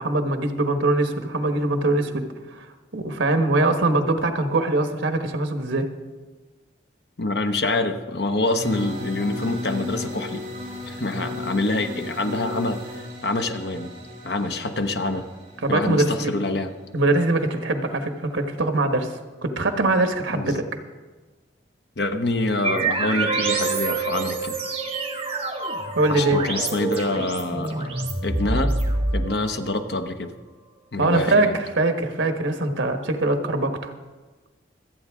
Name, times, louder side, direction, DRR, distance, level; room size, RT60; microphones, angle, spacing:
voice 1, 0.0-2.2 2.5-2.7 2.9-5.9 15.6-16.3 16.9-20.6 25.9-26.4 31.0-33.9, right 2 dB, 80° right, 6 dB, 1.3 m, -22 dB
voice 2, 7.2-10.4 10.9-13.9 14.2-15.3 15.7-16.7 20.3-20.6 22.0-24.6 26.1-28.0 28.2-28.7 29.1-30.3 30.9-31.5, left 2 dB, 60° left, 6 dB, 0.9 m, -26 dB
sound 1, 8.6-17.4, left 2 dB, 45° right, 5.4 m, -35 dB
sound 2, 22.6-29.8, right 3 dB, 30° right, 1.7 m, -26 dB
26.0 x 8.7 x 3.6 m, 1.3 s
head